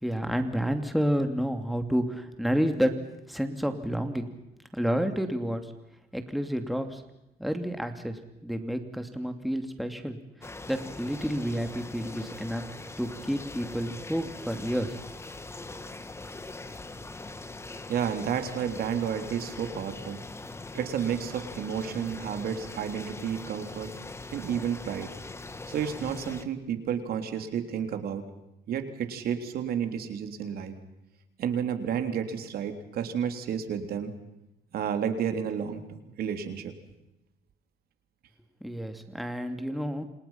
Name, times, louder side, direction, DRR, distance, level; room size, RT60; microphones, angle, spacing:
voice 1, 0.0-3.0 3.3-4.3 4.7-5.7 6.1-7.0 7.4-12.6 13.0-15.0 38.6-40.1, equal, ahead, 6 dB, 2.6 m, -30 dB
sound 1, 10.4-26.4, left 3 dB, 15° left, 1.9 m, -42 dB
voice 2, 17.9-20.2 20.7-23.9 24.3-25.1 25.7-28.2 28.7-30.7 31.4-34.1 34.7-35.8 36.2-36.7, right 8 dB, 65° right, 7 dB, 3.5 m, -31 dB
29.0 x 27.5 x 5.8 m, 0.91 s
cardioid pair, 110°, 17 cm